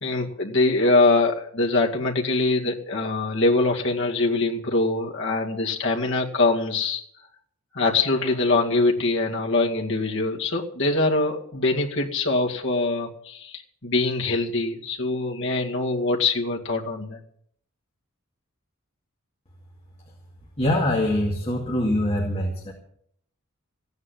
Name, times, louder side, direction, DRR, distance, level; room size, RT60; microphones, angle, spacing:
voice 1, 0.0-7.0 7.7-17.2, left 3 dB, 60° left, 1 dB, 2.2 m, -23 dB
voice 2, 20.6-22.7, left 1 dB, 30° left, -1 dB, 2.3 m, -23 dB
15.5 x 9.5 x 7.8 m, 0.65 s
head